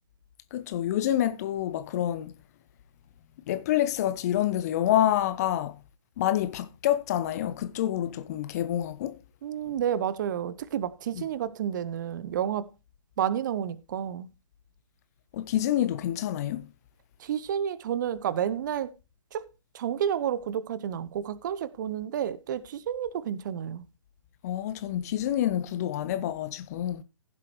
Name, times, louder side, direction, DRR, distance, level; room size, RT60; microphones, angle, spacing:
voice 1, 0.5-2.3 3.5-5.8 6.2-9.2 11.1-11.2 15.3-16.7 24.4-27.0, left 12 dB, 30° left, 0.8 m, -27 dB
voice 2, 9.4-12.7 13.2-14.3 17.2-18.9 19.3-19.4 19.7-23.8, right 9 dB, 35° right, 0.8 m, -30 dB
15.5 x 7.7 x 3.2 m
figure-of-eight pair, 135°, 17 cm